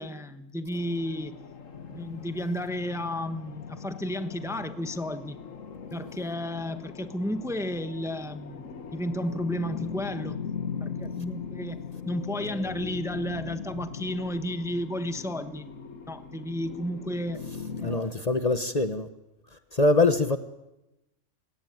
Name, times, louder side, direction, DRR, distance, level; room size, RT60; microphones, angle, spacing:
voice 1, 0.0-1.3 1.9-5.4 5.9-8.6 8.9-10.4 10.8-11.8 12.1-15.7 16.1-17.4 17.8-18.3, equal, ahead, 1.1 m, -32 dB
sound 1, 0.7-18.0, left 6 dB, 80° left, 1.9 m, -40 dB
voice 2, 17.8-19.1 19.7-20.4, left 2 dB, 30° left, 1.2 m, -23 dB
29.0 x 17.5 x 9.4 m
omnidirectional pair, 1.3 m